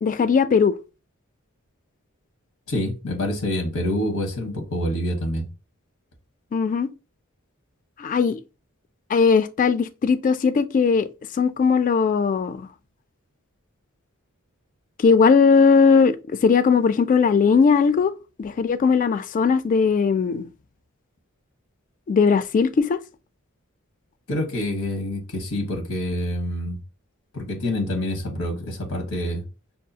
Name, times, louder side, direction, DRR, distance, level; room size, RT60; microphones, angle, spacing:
voice 1, 0.0-0.7 6.5-6.9 8.0-8.4 9.1-11.1 11.4-12.7 15.0-16.2 16.4-18.1 18.4-20.5 22.1-23.0, left 5 dB, 40° left, 0.3 m, -18 dB
voice 2, 2.7-5.5 24.3-26.8 27.3-29.4, left 1 dB, 90° left, 1.2 m, -27 dB
5.4 x 2.3 x 2.7 m
head